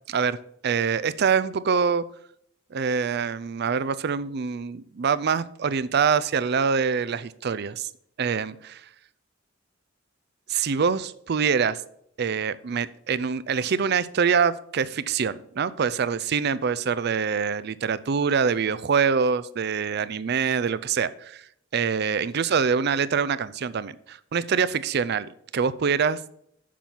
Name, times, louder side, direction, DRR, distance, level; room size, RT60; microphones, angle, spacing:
voice 1, 0.6-2.0 2.7-7.9 8.2-8.8 10.5-11.8 12.2-21.4 21.7-26.2, right 6 dB, 55° right, 16 dB, 0.5 m, -25 dB
7.4 x 5.8 x 7.0 m, 0.69 s
head